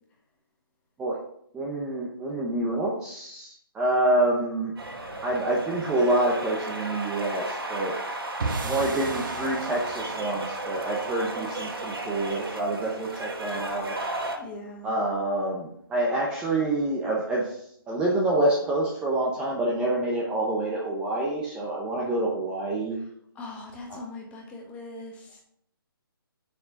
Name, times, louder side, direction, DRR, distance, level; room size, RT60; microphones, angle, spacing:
voice 1, 1.5-4.7 5.2-8.0 8.6-14.0 14.8-23.0 23.9-24.0, right 1 dB, 5° right, -4 dB, 0.8 m, -27 dB
sound 1, 4.8-14.4, right 2 dB, 90° right, 3.5 m, -34 dB
sound 2, 8.4-14.8, right 3 dB, 60° right, 1.6 m, -38 dB
voice 2, 14.3-15.0 23.3-25.4, left 2 dB, 10° left, 0 dB, 1.4 m, -41 dB
6.9 x 5.9 x 5.2 m, 0.68 s
hypercardioid pair, 160°, 12 cm